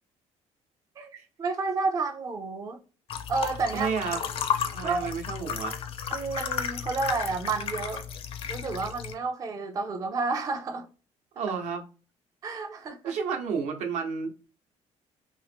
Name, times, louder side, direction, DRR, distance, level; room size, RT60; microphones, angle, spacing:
voice 1, 1.4-2.8 3.3-3.9 4.8-5.1 6.1-8.1 8.5-10.9 12.4-13.1, right 4 dB, 30° right, 0.4 m, -30 dB
sound 1, 3.1-9.1, left 8 dB, 50° left, 0.5 m, -33 dB
voice 2, 3.7-4.2 4.7-5.8 11.3-11.8 13.0-14.3, right 6 dB, 70° right, 0.8 m, -31 dB
2.8 x 2.4 x 3.3 m
cardioid pair, 145°, 12 cm